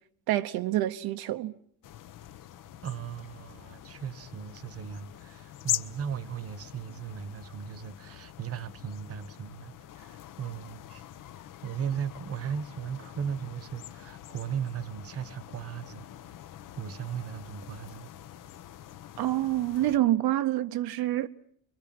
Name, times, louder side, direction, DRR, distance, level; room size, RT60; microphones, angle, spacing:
voice 1, 0.3-1.5 19.2-21.3, right 14 dB, 75° right, 1.1 m, -27 dB
sound 1, 1.8-20.0, left 12 dB, 55° left, 1.1 m, -43 dB
voice 2, 2.8-11.0 11.6-16.1 16.8-18.1, right 8 dB, 40° right, 1.2 m, -37 dB
25.5 x 23.5 x 7.7 m
cardioid pair, 160°, 37 cm